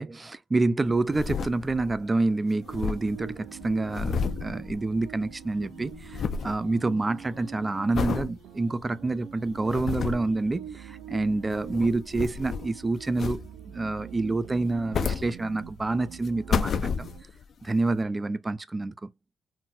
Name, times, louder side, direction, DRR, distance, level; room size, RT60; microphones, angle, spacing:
voice 1, 0.0-17.1 17.6-19.1, right 2 dB, 20° right, 0.4 m, -28 dB
sound 1, 0.9-2.0 2.3-2.4 2.5-5.3 5.6-6.6 7.1-7.4 7.9-8.3 8.8-8.9 9.5-10.3 11.3-12.8 13.2-13.8 14.6-15.8 16.2-17.4 18.0-18.1, left 6 dB, 55° left, 0.3 m, -31 dB
sound 2, 2.5-17.2, right 9 dB, 80° right, 0.5 m, -44 dB
3.9 x 2.1 x 2.4 m
cardioid pair, 90°, 0 cm